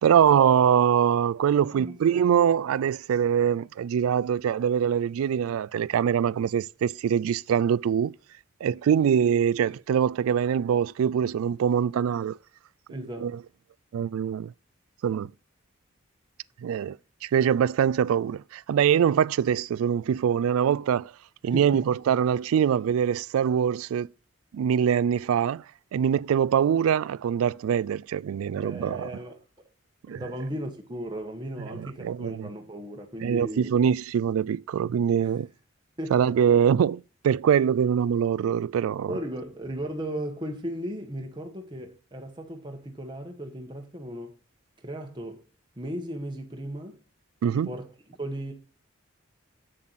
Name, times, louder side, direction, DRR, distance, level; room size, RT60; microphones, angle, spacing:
voice 1, 0.0-8.1 8.6-12.4 13.0-13.3 13.9-14.5 15.0-15.3 16.6-17.0 17.2-21.1 21.4-24.1 24.5-25.6 25.9-29.1 30.1-30.2 31.7-32.5 33.2-35.5 36.1-39.1 47.4-47.7, right 8 dB, 90° right, 0.3 m, -23 dB
voice 2, 12.9-13.3 21.4-21.8 28.6-29.4 30.1-33.7 35.2-35.4 36.0-36.2 39.1-44.3 44.8-45.4 45.8-47.0 47.5-47.9 48.2-48.5, equal, 20° right, 1.2 m, -36 dB
7.7 x 7.3 x 4.0 m
head